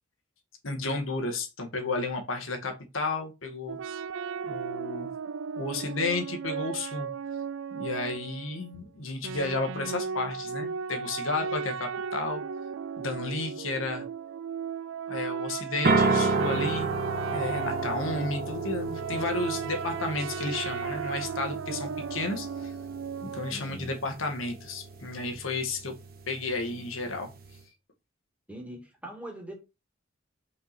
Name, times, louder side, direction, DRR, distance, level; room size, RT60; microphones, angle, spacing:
voice 1, 0.6-3.8 4.4-5.1 5.5-7.1 7.7-12.4 13.0-14.0 15.1-16.9 17.3-22.7 23.2-25.9 26.3-27.3, left 3 dB, 90° left, 1.8 m, -32 dB
sound 1, 3.7-8.8 9.2-23.5, right 6 dB, 70° right, 0.4 m, -36 dB
sound 2, 15.8-27.6, right 3 dB, 50° right, 1.2 m, -32 dB
voice 2, 23.5-23.9 28.5-29.5, equal, 5° right, 2.3 m, -41 dB
5.6 x 5.2 x 4.3 m
head